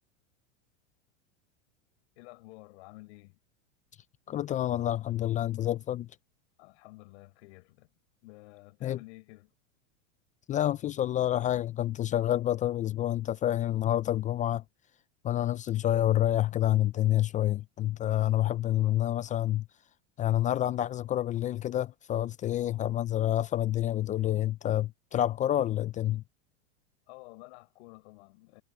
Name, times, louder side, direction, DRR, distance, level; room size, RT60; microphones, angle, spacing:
voice 1, 2.2-3.4 6.6-7.9 8.2-9.5 27.1-28.6, left 23 dB, 65° left, 5.1 m, -51 dB
voice 2, 4.3-6.1 8.8-9.0 10.5-14.6 15.2-19.6 20.2-26.2, left 12 dB, 20° left, 0.4 m, -28 dB
supercardioid pair, 130°, 36 cm